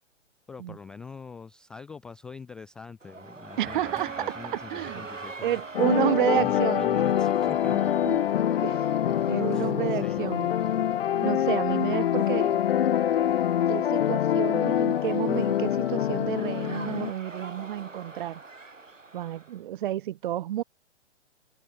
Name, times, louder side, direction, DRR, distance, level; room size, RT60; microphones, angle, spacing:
voice 1, 0.5-5.6 6.4-7.9 9.5-10.3, left 5 dB, ahead, 0.4 m, -44 dB
sound 1, 3.0-19.6, right 3 dB, 90° right, 3.7 m, -45 dB
sound 2, 3.1-12.5, right 12 dB, 20° right, 7.3 m, -49 dB
voice 2, 3.6-4.3 4.7-5.0 5.4-6.9 8.0-8.2 8.6-8.9 9.3-10.5 11.2-12.6 13.7-18.4 19.1-20.6, right 13 dB, 45° right, 1.5 m, -30 dB
sound 3, 5.7-17.1, left 10 dB, 50° left, 0.7 m, -25 dB
figure-of-eight pair, 130°, 37 cm